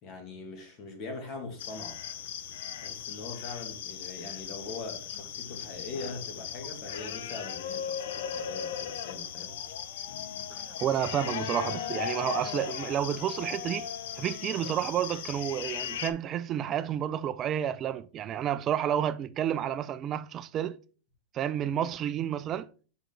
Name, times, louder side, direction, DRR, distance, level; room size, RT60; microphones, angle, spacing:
voice 1, 0.0-2.0 2.8-9.6, left 3 dB, 40° left, 2.2 m, -42 dB
sound 1, 1.6-16.1, left 9 dB, 70° left, 0.6 m, -37 dB
voice 2, 10.5-13.9 14.2-20.8 21.3-22.7, right 10 dB, 35° right, 0.3 m, -30 dB
5.0 x 5.0 x 3.9 m
hypercardioid pair, 120°, 0 cm